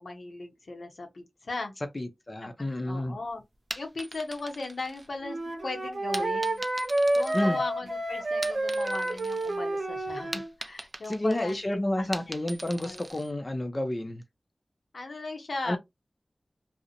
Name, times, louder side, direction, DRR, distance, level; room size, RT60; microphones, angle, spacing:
voice 1, 0.0-1.7 2.4-3.4 3.8-6.6 7.1-12.3 12.8-13.0 14.9-15.8, left 3 dB, 80° left, 0.7 m, -38 dB
voice 2, 1.9-3.2 7.3-7.6 11.0-14.2 15.6-15.8, left 1 dB, 40° left, 0.5 m, -30 dB
sound 1, 3.5-5.5 6.1-7.9 8.3-9.6 9.9-13.3, right 1 dB, 35° right, 0.4 m, -41 dB
Wind instrument woodwind instrument, 5.2-10.5, right 1 dB, 70° right, 0.7 m, -29 dB
2.5 x 2.0 x 2.7 m
wide cardioid pair, 55°, 0 cm